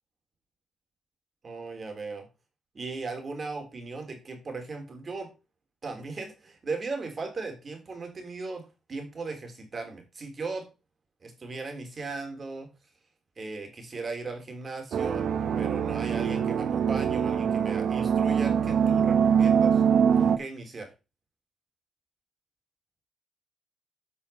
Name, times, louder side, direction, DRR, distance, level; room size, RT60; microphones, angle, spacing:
voice 1, 1.4-2.3 2.7-5.3 5.8-10.7 11.2-12.7 13.4-15.2 15.6-19.8 20.2-20.9, right 3 dB, 35° right, 5 dB, 3.3 m, -37 dB
sound 1, 14.9-20.4, right 7 dB, 65° right, 0.8 m, -23 dB
8.5 x 5.6 x 5.6 m, 0.29 s
cardioid pair, 90°, 0 cm